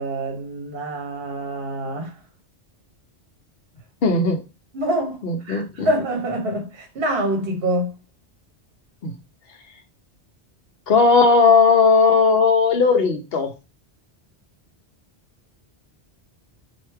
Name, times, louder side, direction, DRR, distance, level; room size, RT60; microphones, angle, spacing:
voice 1, 0.0-2.1 4.7-7.9, right 1 dB, 65° right, 1.1 m, -26 dB
voice 2, 4.0-4.4 5.2-5.9 9.0-9.1 10.9-13.5, left 4 dB, 60° left, 1.0 m, -17 dB
3.1 x 2.8 x 4.5 m
omnidirectional pair, 1.1 m